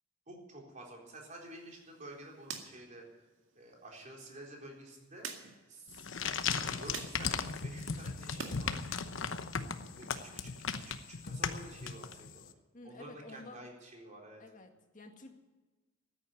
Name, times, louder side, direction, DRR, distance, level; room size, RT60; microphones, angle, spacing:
voice 1, 0.3-3.0 3.6-8.7 10.0-12.5 12.8-14.4, right 1 dB, 40° right, -1 dB, 4.1 m, -51 dB
sound 1, 1.4-8.6 9.0-10.1, right 5 dB, 75° right, 2.1 m, -50 dB
sound 2, 5.9-12.4, left 6 dB, 75° left, 1.0 m, -37 dB
voice 2, 9.7-10.1 12.7-13.6 14.4-15.3, left 2 dB, 40° left, 4 dB, 1.9 m, -52 dB
14.0 x 10.0 x 9.5 m, 1.2 s
head